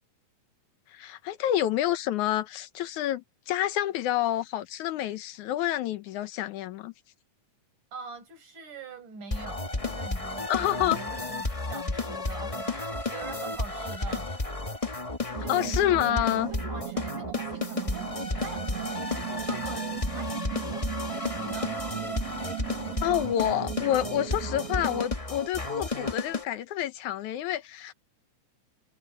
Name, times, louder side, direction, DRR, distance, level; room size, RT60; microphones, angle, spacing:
voice 1, 0.9-6.9 10.5-11.0 15.5-16.5 23.0-27.9, left 12 dB, 75° left, 2.3 m, -28 dB
voice 2, 7.9-14.3 15.4-16.2 16.5-20.9 21.4-21.8, right 4 dB, 80° right, 6.8 m, -44 dB
sound 1, 9.3-26.4, left 2 dB, 40° left, 0.4 m, -32 dB
sound 2, 15.3-25.1, right 18 dB, 60° right, 1.9 m, -37 dB
omnidirectional pair, 3.5 m